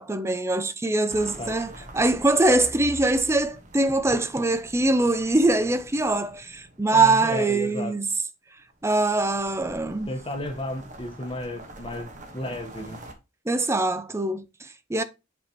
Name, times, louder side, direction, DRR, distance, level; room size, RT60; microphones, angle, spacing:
voice 1, 0.0-8.1 8.8-10.1 13.5-15.0, right 2 dB, 15° right, 0.5 m, -23 dB
sound 1, 1.1-7.6 8.7-13.1, right 1 dB, 40° right, 1.3 m, -45 dB
voice 2, 6.9-8.0 10.1-13.0, left 1 dB, 25° left, 1.1 m, -33 dB
8.1 x 5.0 x 3.0 m
head